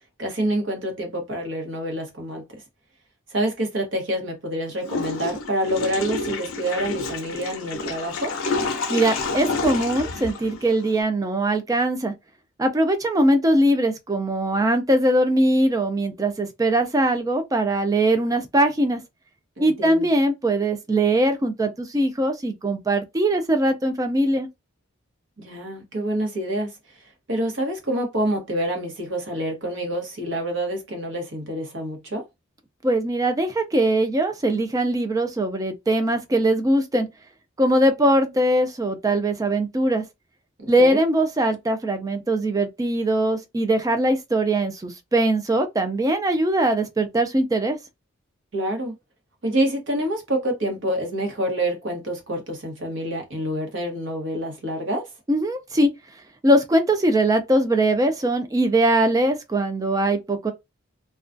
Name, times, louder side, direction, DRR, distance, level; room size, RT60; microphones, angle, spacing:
voice 1, 0.2-2.4 3.3-8.3 19.6-20.1 25.4-26.7 27.3-32.2 40.6-41.0 48.5-48.9 49.4-55.1, right 1 dB, 60° right, 0.9 m, -27 dB
Water / Toilet flush, 4.8-11.0, left 3 dB, 80° left, 0.5 m, -29 dB
voice 2, 8.9-12.1 12.6-19.0 19.6-24.5 32.8-37.1 37.6-40.0 40.7-47.8 55.3-55.9 56.4-60.5, right 1 dB, 15° right, 0.3 m, -21 dB
2.3 x 2.2 x 2.5 m
head